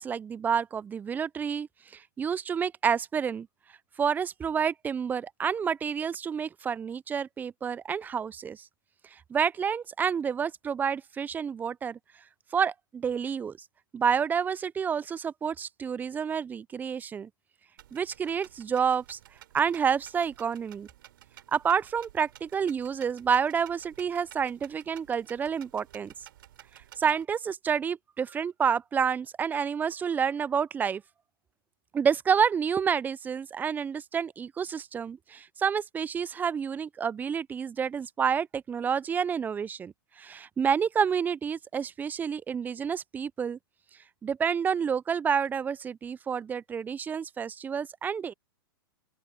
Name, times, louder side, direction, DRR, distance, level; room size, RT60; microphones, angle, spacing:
voice 1, 0.0-1.7 1.9-3.5 4.0-8.6 9.3-12.0 12.5-13.6 13.9-17.3 17.9-19.2 19.5-20.9 21.5-26.1 27.0-31.0 31.9-43.6 44.2-48.3, right 7 dB, 15° right, 0.4 m, -29 dB
sound 1, 17.8-27.2, right 13 dB, 65° right, 4.6 m, -54 dB
open air
hypercardioid pair, 115°, 12 cm